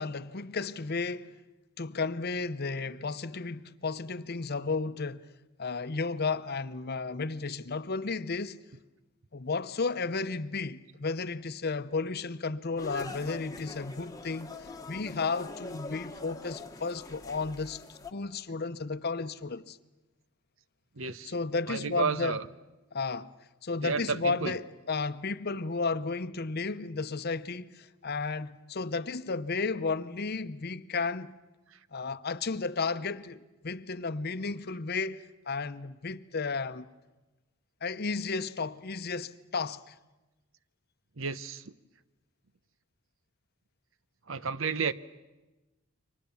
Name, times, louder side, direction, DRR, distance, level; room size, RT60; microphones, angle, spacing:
voice 1, 0.0-1.3 1.8-5.2 5.6-8.6 9.3-14.5 14.9-17.8 18.1-19.8 21.2-22.4 22.9-23.3 23.6-31.3 31.9-36.9 37.8-39.9, left 4 dB, 50° left, 0.8 m, -33 dB
sound 1, 12.8-18.1, left 2 dB, 15° left, 1.3 m, -44 dB
voice 2, 21.0-21.3 21.7-22.5 23.8-24.5 31.7-31.8 41.2-41.7 44.3-44.9, right 5 dB, 70° right, 0.9 m, -32 dB
29.5 x 24.5 x 7.1 m
head